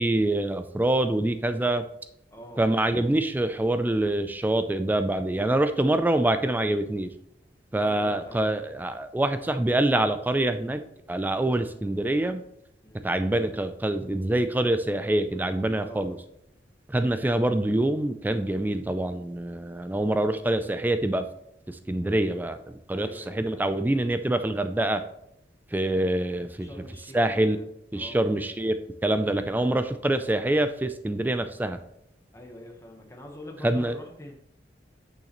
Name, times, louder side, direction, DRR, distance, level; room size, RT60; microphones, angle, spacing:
voice 1, 0.0-1.8 2.6-7.1 7.7-10.8 11.1-12.4 13.0-16.2 16.9-21.2 21.7-25.0 25.7-26.7 27.1-27.6 27.9-28.8 29.0-31.8 33.6-33.9, right 1 dB, 10° right, 9 dB, 0.3 m, -25 dB
voice 2, 2.3-2.6 7.8-8.6 11.4-11.6 12.8-13.0 15.8-16.1 22.9-23.8 26.6-27.7 27.9-28.3 32.3-34.3, left 1 dB, 15° left, 1 dB, 1.1 m, -45 dB
8.7 x 6.4 x 3.0 m, 0.78 s
head